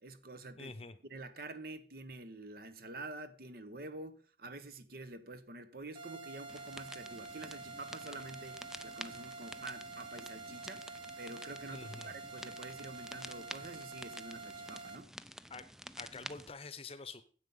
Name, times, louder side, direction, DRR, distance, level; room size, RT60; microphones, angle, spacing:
voice 1, 0.0-0.8 1.1-10.9 11.2-15.1, right 2 dB, 55° right, 1.1 m, -48 dB
voice 2, 0.6-0.9 11.7-12.1 15.5-15.7 16.0-17.2, left 3 dB, 35° left, 0.8 m, -46 dB
sound 1, 5.9-15.0, right 3 dB, 30° right, 1.3 m, -48 dB
sound 2, 6.5-16.5, equal, 5° right, 0.4 m, -50 dB
9.9 x 8.1 x 5.5 m
head